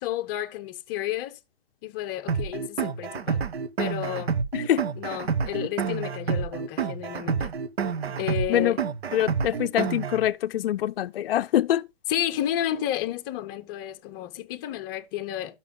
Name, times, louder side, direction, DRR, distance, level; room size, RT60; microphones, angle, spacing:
voice 1, 0.0-1.4 1.8-3.4 3.8-4.3 5.0-7.5 8.2-8.8 12.1-15.6, left 12 dB, 20° left, 0.6 m, -31 dB
sound 1, 2.3-10.3, right 6 dB, 80° right, 1.0 m, -28 dB
voice 2, 9.1-11.8, left 12 dB, 65° left, 0.4 m, -24 dB
12.0 x 5.9 x 3.7 m
hypercardioid pair, 150°, 31 cm